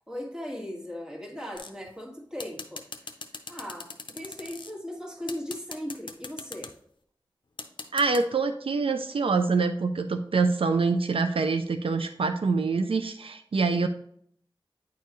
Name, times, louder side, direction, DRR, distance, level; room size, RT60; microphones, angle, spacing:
voice 1, 0.1-3.1 3.5-6.7, left 1 dB, 10° right, -1 dB, 1.7 m, -38 dB
sound 1, 1.6-1.9 2.4-4.7 5.3-6.7 7.6-8.2, left 3 dB, 60° left, 0.6 m, -40 dB
voice 2, 7.9-13.9, right 4 dB, 80° right, 8 dB, 0.4 m, -25 dB
9.2 x 4.6 x 3.1 m, 0.66 s
wide cardioid pair, 50°, 9 cm